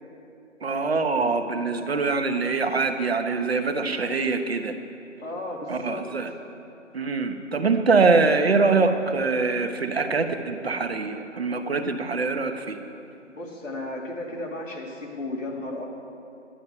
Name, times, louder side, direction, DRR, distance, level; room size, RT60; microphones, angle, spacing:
voice 1, 0.6-4.7 5.7-6.3 6.9-12.8, right 4 dB, 55° right, 6 dB, 1.2 m, -24 dB
voice 2, 5.2-6.1 13.3-15.9, left 2 dB, 85° left, -2 dB, 3.8 m, -34 dB
11.5 x 11.5 x 7.4 m, 2.7 s
figure-of-eight pair, 165°, 37 cm